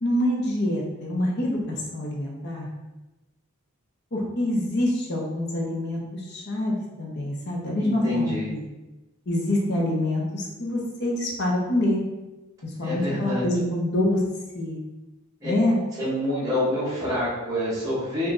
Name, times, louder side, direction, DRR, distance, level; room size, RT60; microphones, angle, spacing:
voice 1, 0.0-2.7 4.1-8.6 9.3-12.0 12.6-14.2 14.5-14.8 15.4-15.8, left 1 dB, 50° left, -2 dB, 0.8 m, -26 dB
voice 2, 7.8-8.5 12.8-13.5 15.4-15.5 16.0-18.3, left 1 dB, 15° right, -9 dB, 0.9 m, -27 dB
5.0 x 2.5 x 2.6 m, 1.1 s
head